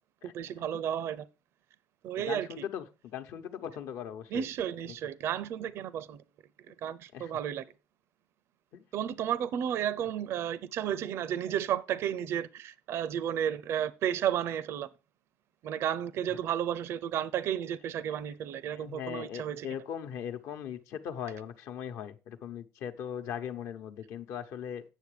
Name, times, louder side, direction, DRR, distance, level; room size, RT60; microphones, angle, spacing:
voice 1, 0.2-1.3 2.0-2.7 4.3-6.2 6.7-7.7 8.9-14.9 15.6-19.7, right 10 dB, 60° right, 0.5 m, -32 dB
voice 2, 2.2-4.5 7.1-7.3 8.7-8.8 18.7-24.8, left 9 dB, 70° left, 0.9 m, -39 dB
8.3 x 6.8 x 4.9 m
cardioid pair, 120°, 5 cm